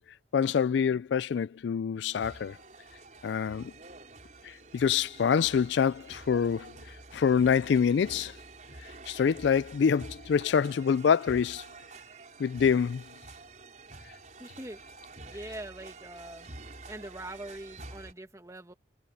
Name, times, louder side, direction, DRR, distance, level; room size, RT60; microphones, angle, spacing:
voice 1, 0.3-2.6 3.2-3.7 4.7-6.7 7.1-8.3 9.1-11.6 12.4-13.0, left 7 dB, 75° left, 0.3 m, -26 dB
sound 1, 2.1-18.1, right 2 dB, 40° right, 6.0 m, -48 dB
voice 2, 14.4-14.8 15.3-16.5 16.9-18.7, right 1 dB, 15° right, 2.0 m, -43 dB
head